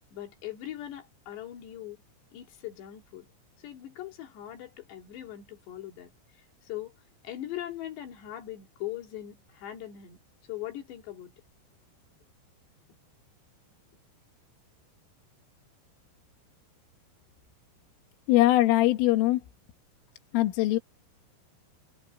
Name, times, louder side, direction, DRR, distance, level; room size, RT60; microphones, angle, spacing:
voice 1, 0.1-2.0 2.3-3.3 3.6-7.0 7.2-10.2 10.5-11.4, left 13 dB, 65° left, 4.4 m, -40 dB
voice 2, 18.3-19.4 20.3-20.8, left 16 dB, 85° left, 4.1 m, -21 dB
omnidirectional pair, 5.6 m